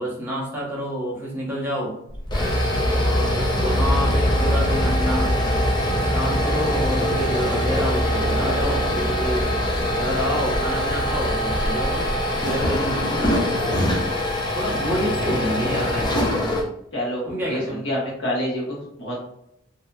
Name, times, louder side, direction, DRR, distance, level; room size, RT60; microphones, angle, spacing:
voice 1, 0.0-1.9 2.9-5.3 6.1-9.5 9.9-12.1 12.4-13.4 14.5-16.5 17.3-17.8, equal, 10° right, -5 dB, 0.8 m, -28 dB
sound 1, 2.1-16.6, equal, 20° left, 0.4 m, -22 dB
voice 2, 16.9-19.2, equal, 65° left, -4 dB, 1.1 m, -27 dB
2.6 x 2.5 x 2.2 m, 0.76 s
head